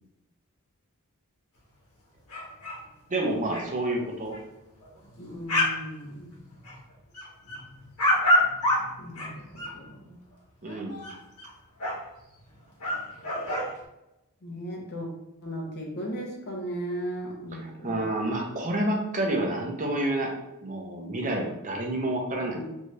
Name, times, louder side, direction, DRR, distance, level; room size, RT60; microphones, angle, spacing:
sound 1, 2.3-2.8 3.1-3.2 3.4-3.6 4.3-4.4 4.8-5.8 6.1-6.8 7.1-9.7 10.6-11.5 11.8-11.9 12.5-12.6 12.8-13.7, left 1 dB, 85° left, 1.0 m, -27 dB
voice 1, 3.1-4.4 10.6-11.1 17.5-20.3 20.6-22.6, right 1 dB, 35° right, 0 dB, 0.6 m, -29 dB
voice 2, 5.2-6.4 9.0-10.2 14.4-15.1 15.4-18.1 22.4-22.6, equal, 50° left, -1 dB, 0.7 m, -37 dB
2.7 x 2.4 x 3.1 m, 0.93 s
head